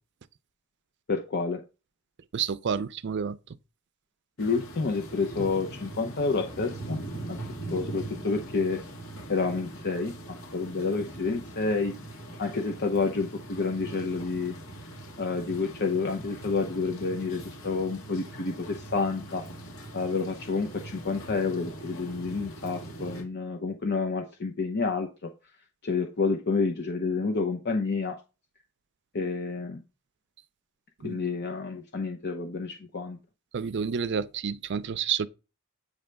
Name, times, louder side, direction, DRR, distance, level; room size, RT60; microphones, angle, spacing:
voice 1, 1.1-1.6 4.4-7.0 7.3-7.4 7.7-8.8 9.3-10.1 10.5-11.9 12.4-14.6 15.2-19.4 19.9-25.3 25.8-28.2 29.1-29.8 31.0-33.2, left 4 dB, 50° left, 0.7 m, -29 dB
voice 2, 2.3-3.4 31.0-31.2 33.5-35.3, right 7 dB, 55° right, 0.4 m, -29 dB
sound 1, 4.4-23.2, right 1 dB, 80° left, 3.0 m, -41 dB
8.5 x 3.3 x 5.1 m
head